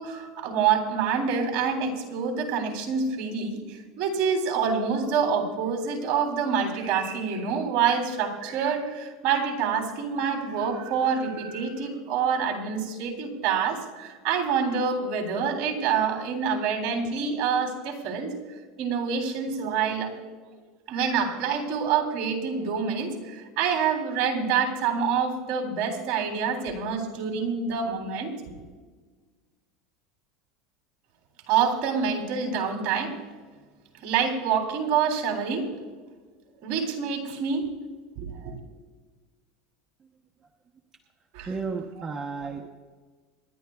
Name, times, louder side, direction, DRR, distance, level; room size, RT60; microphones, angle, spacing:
voice 1, 0.0-18.3 18.8-20.1 20.9-28.3 31.5-33.2 34.0-35.7 36.6-37.7 38.2-38.6 41.3-41.5, right 6 dB, 50° right, 1 dB, 3.5 m, -27 dB
voice 2, 41.5-42.7, right 4 dB, 20° right, 2 dB, 0.9 m, -33 dB
27.0 x 11.5 x 2.4 m, 1.4 s
supercardioid pair, 135°, 3 cm